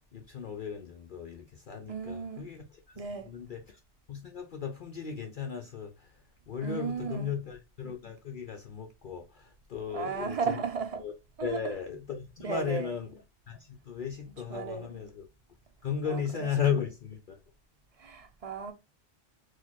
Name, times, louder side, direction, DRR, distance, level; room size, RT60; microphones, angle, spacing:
voice 1, 0.0-3.8 4.1-10.5 11.0-11.1 11.4-13.1 13.5-15.2 15.8-17.4, left 7 dB, 55° left, 0.6 m, -36 dB
voice 2, 1.9-2.4 3.0-3.3 6.6-7.3 9.9-11.1 11.4-11.7 12.4-12.9 14.5-15.0 16.0-16.5 18.0-18.7, right 5 dB, 40° right, 0.6 m, -35 dB
4.2 x 2.3 x 4.3 m
omnidirectional pair, 1.2 m